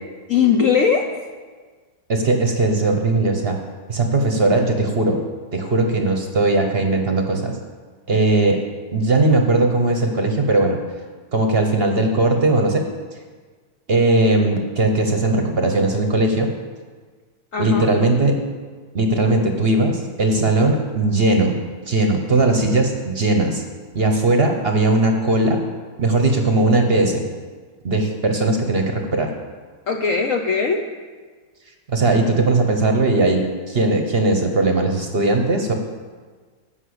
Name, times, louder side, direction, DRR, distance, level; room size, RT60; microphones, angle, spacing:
voice 1, 0.3-1.1 17.5-17.9 29.9-30.8, left 6 dB, 65° left, 4 dB, 0.8 m, -19 dB
voice 2, 2.1-3.6 3.9-5.2 5.5-7.6 8.1-8.6 8.9-10.8 11.3-12.8 13.9-16.5 17.6-18.4 18.9-21.5 21.8-23.6 23.9-25.6 26.0-27.2 27.8-29.3 31.9-35.7, right 2 dB, 40° right, 4 dB, 0.9 m, -18 dB
12.0 x 5.8 x 8.0 m, 1.5 s
omnidirectional pair, 2.1 m